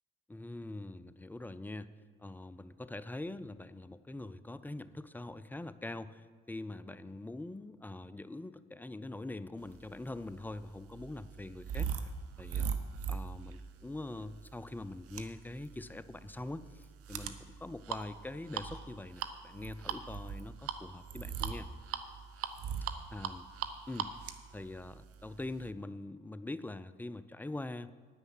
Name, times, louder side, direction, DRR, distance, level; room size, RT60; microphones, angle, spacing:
voice 1, 0.3-1.9 2.2-12.7 13.1-21.7 23.1-23.4 23.9-24.1 24.5-27.9, left 2 dB, 5° left, 14 dB, 0.4 m, -43 dB
sound 1, 10.0-25.7, right 7 dB, 50° right, 0.9 m, -40 dB
9.7 x 9.4 x 6.2 m, 1.5 s
figure-of-eight pair, 50°, 29 cm